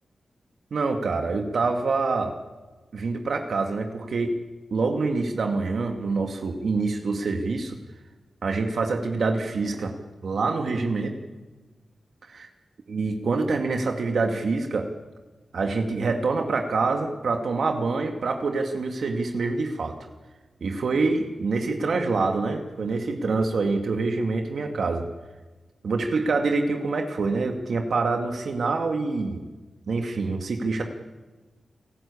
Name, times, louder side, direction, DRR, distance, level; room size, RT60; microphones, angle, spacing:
voice 1, 0.7-2.3 2.9-4.3 4.7-7.8 8.4-9.9 10.2-11.2 12.3-12.5 12.9-14.9 15.5-20.0 20.6-25.1 25.8-29.4 29.9-30.8, right 3 dB, 75° right, 4 dB, 2.2 m, -26 dB
29.0 x 12.5 x 8.6 m, 1.2 s
wide cardioid pair, 80°, 0 cm